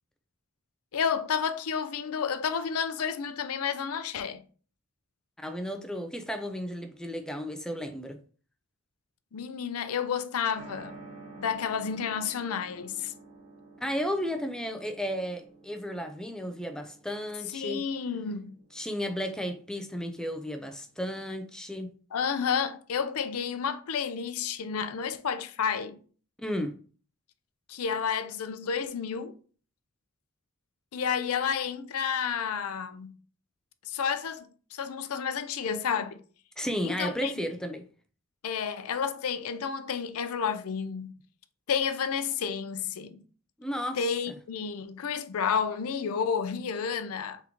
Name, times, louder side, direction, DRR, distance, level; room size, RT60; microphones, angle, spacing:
voice 1, 0.9-4.4 9.3-11.0 11.4-13.1 17.5-18.5 22.1-26.0 27.7-29.3 30.9-33.1 33.9-36.2 36.8-37.3 38.4-41.1 41.7-43.2 44.0-47.4, left 6 dB, 75° left, 0.5 m, -31 dB
voice 2, 5.4-8.2 13.8-17.8 18.7-21.9 26.4-26.8 36.6-37.9 43.6-44.0, equal, 5° left, 0.3 m, -33 dB
sound 1, 10.5-21.4, right 3 dB, 60° right, 2.0 m, -51 dB
3.7 x 3.5 x 3.0 m
head